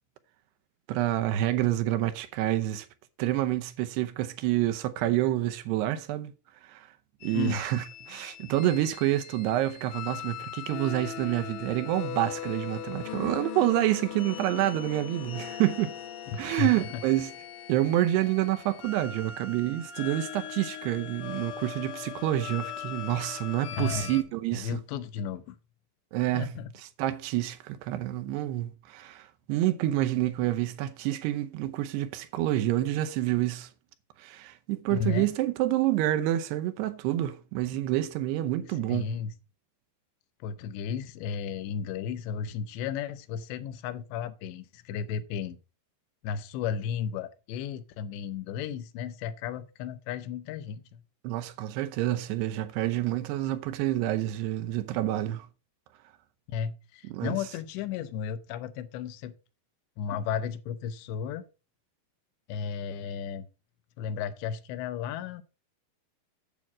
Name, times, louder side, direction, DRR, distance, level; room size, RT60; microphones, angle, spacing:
voice 1, 0.9-2.9 3.2-6.3 6.6-6.9 7.2-16.0 16.4-17.3 17.7-24.8 26.1-26.5 27.0-33.7 34.2-39.1 51.2-55.5 57.0-57.4, right 14 dB, 80° right, 2.7 m, -28 dB
sound 1, 7.2-24.2, left 10 dB, 65° left, 2.6 m, -40 dB
voice 2, 16.3-16.9 23.7-24.2 24.5-25.6 26.3-26.7 34.9-35.3 38.9-39.3 40.4-45.6 46.2-51.0 56.5-59.3 60.0-61.4 62.5-63.5 64.0-65.4, left 7 dB, 90° left, 3.1 m, -34 dB
9.2 x 4.6 x 7.5 m
omnidirectional pair, 5.0 m